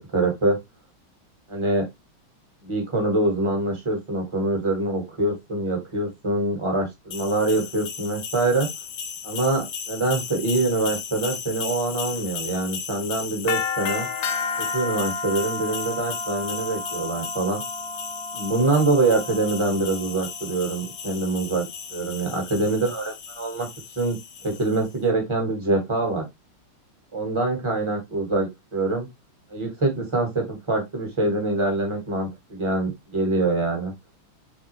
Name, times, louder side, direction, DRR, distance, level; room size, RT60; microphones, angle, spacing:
voice 1, 0.1-0.6 1.5-1.8 2.6-8.7 9.2-14.1 14.7-17.6 18.3-23.7 24.0-24.2 24.4-26.2 27.1-29.1 29.5-33.9, right 2 dB, 20° right, 1 dB, 1.0 m, -24 dB
sound 1, 7.1-24.8, left 5 dB, 85° left, 0.7 m, -33 dB
3.7 x 3.5 x 3.0 m, 0.20 s
omnidirectional pair, 2.2 m